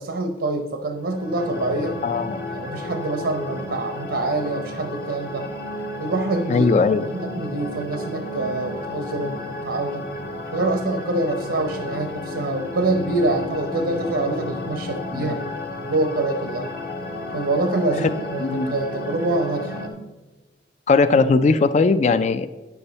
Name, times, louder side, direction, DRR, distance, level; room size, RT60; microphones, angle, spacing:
voice 1, 0.0-2.0 2.5-5.5 6.0-10.0 10.5-15.6 15.9-16.7 17.3-19.9, right 2 dB, 75° right, 6 dB, 0.7 m, -25 dB
sound 1, 0.9-19.9, left 1 dB, 55° left, 1.1 m, -32 dB
voice 2, 2.0-2.4 6.5-7.1 15.1-15.4 18.4-18.7 20.9-22.5, left 4 dB, 40° left, 12 dB, 0.3 m, -19 dB
9.8 x 7.1 x 4.0 m, 1.1 s
head